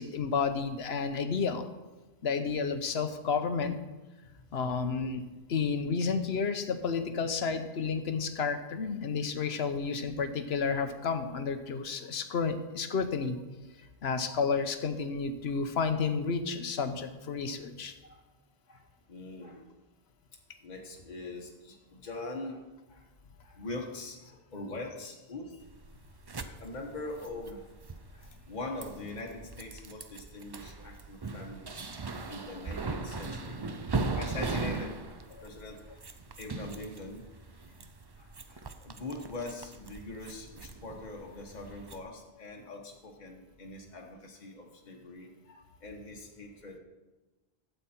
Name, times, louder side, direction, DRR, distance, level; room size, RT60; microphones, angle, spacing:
voice 1, 0.0-1.6 2.2-3.8 4.5-5.2 5.5-13.4 14.0-17.9 35.3-35.4, left 5 dB, 85° left, 9 dB, 1.1 m, -31 dB
voice 2, 19.1-19.7 20.6-23.1 23.4-25.7 26.6-27.7 28.1-31.9 32.2-36.0 36.4-37.2 38.2-46.8, left 2 dB, 45° left, -1 dB, 1.3 m, -43 dB
sound 1, 25.6-42.0, right 3 dB, 30° right, 0.5 m, -39 dB
12.5 x 8.1 x 4.4 m, 1.1 s
omnidirectional pair, 1.0 m